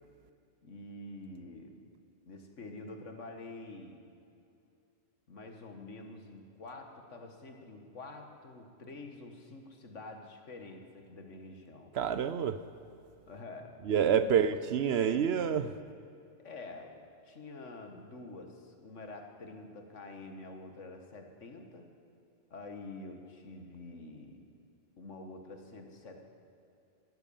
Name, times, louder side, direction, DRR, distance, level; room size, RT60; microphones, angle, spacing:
voice 1, 0.6-1.8 2.3-4.1 5.3-11.9 13.3-13.9 14.2-14.5 15.0-15.3 16.4-21.9 22.5-24.5 25.0-26.3, left 2 dB, 75° left, 4 dB, 1.9 m, -47 dB
voice 2, 11.9-12.6 13.9-15.7, right 8 dB, 65° right, 12 dB, 0.8 m, -27 dB
14.0 x 12.5 x 7.1 m, 2.6 s
omnidirectional pair, 1.3 m